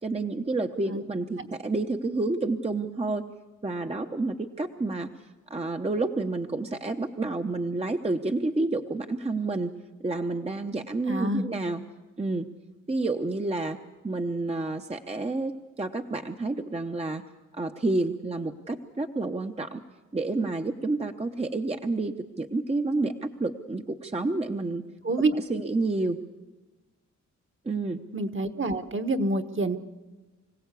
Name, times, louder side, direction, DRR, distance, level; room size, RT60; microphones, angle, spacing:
voice 1, 0.0-3.3 3.6-5.1 5.5-9.7 10.0-11.8 12.2-12.5 12.9-13.8 14.0-17.2 17.5-19.8 20.1-24.8 25.5-26.2 27.6-28.0, right 2 dB, 20° right, 4 dB, 0.9 m, -29 dB
voice 2, 11.1-11.5 25.0-25.3 28.1-29.8, right 2 dB, 40° right, 9 dB, 1.4 m, -27 dB
25.0 x 16.5 x 8.3 m, 1.2 s
cardioid pair, 85°, 30 cm